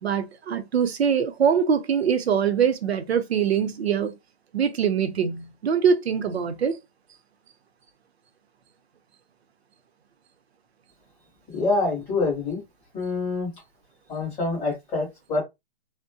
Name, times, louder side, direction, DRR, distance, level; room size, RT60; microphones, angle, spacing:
voice 1, 0.0-4.1 4.5-6.8, right 7 dB, 70° right, 0.7 m, -23 dB
voice 2, 11.5-12.6 12.9-13.5 14.1-15.4, left 3 dB, 5° left, 0.5 m, -26 dB
2.7 x 2.1 x 2.6 m
hypercardioid pair, 160°, 32 cm